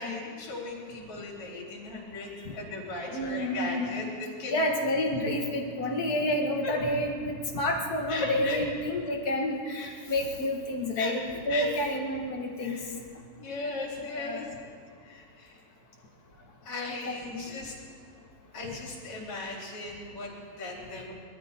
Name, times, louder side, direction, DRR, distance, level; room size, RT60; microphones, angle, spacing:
voice 1, 0.0-4.6 5.1-5.2 6.6-6.7 8.1-8.6 9.7-9.9 11.0-11.1 11.5-11.7 12.6-12.9 13.4-14.7 15.0-15.6 16.3-17.7 18.5-21.1, left 3 dB, 65° left, -3 dB, 4.8 m, -37 dB
voice 2, 3.1-4.0 4.5-12.8 14.2-14.4 16.9-17.4, left 1 dB, 40° left, 0 dB, 1.7 m, -29 dB
22.0 x 13.5 x 4.5 m, 2.1 s
omnidirectional pair, 3.4 m